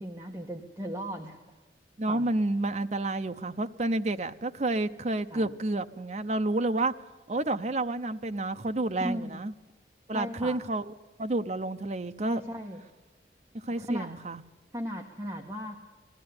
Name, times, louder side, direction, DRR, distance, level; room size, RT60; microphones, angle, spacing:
voice 1, 0.0-1.4 2.1-2.3 5.3-5.5 9.0-9.4 10.1-10.6 12.2-12.8 13.8-14.1 14.7-15.8, equal, 15° right, 0 dB, 1.3 m, -36 dB
voice 2, 2.0-6.9 7.3-9.5 10.1-10.9 11.2-12.4 13.5-14.4, right 2 dB, 40° right, 7 dB, 0.7 m, -30 dB
20.0 x 14.5 x 9.6 m, 1.2 s
head